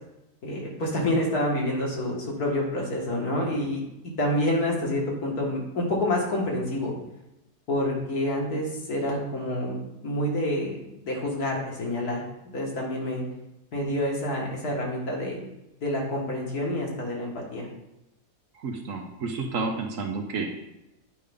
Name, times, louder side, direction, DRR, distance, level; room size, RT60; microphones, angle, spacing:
voice 1, 0.4-6.9 7.7-9.8 10.0-12.2 12.5-13.2 13.7-15.4 15.8-17.7, left 1 dB, 70° left, -2 dB, 2.1 m, -28 dB
voice 2, 18.5-20.5, right 4 dB, 60° right, 3 dB, 1.1 m, -30 dB
8.6 x 5.2 x 3.5 m, 0.92 s
omnidirectional pair, 1.7 m